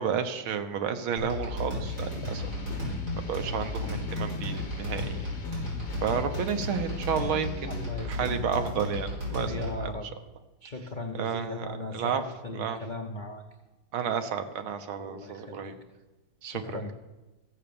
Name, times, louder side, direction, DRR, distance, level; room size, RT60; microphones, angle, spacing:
voice 1, 0.0-5.1 6.0-7.7 8.0-9.9 11.1-11.6 11.9-12.2 12.5-12.8 13.9-15.8 16.4-16.9, right 7 dB, 80° right, 8 dB, 1.8 m, -32 dB
sound 1, 1.2-9.9, left 2 dB, 50° right, 5.4 m, -34 dB
sound 2, 1.8-7.9, left 3 dB, 35° left, 1.5 m, -40 dB
voice 2, 7.6-8.4 8.6-8.8 9.4-10.1 10.6-13.4 15.0-15.7 16.4-16.9, left 2 dB, 75° left, 2 dB, 0.4 m, -38 dB
14.5 x 7.6 x 7.0 m, 1.1 s
omnidirectional pair, 2.2 m